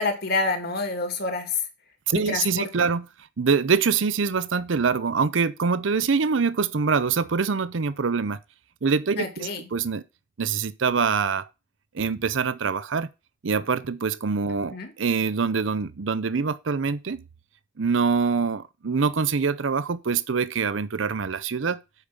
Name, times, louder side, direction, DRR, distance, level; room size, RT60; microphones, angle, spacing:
voice 1, 0.0-1.6 2.1-2.7 9.2-9.7 14.7-14.9, left 3 dB, 55° left, 2.5 m, -27 dB
voice 2, 2.1-3.1 3.4-8.4 8.8-10.0 10.4-11.5 11.9-13.1 13.4-17.2 17.8-21.8, right 5 dB, 70° right, 0.6 m, -24 dB
8.4 x 5.4 x 6.9 m
head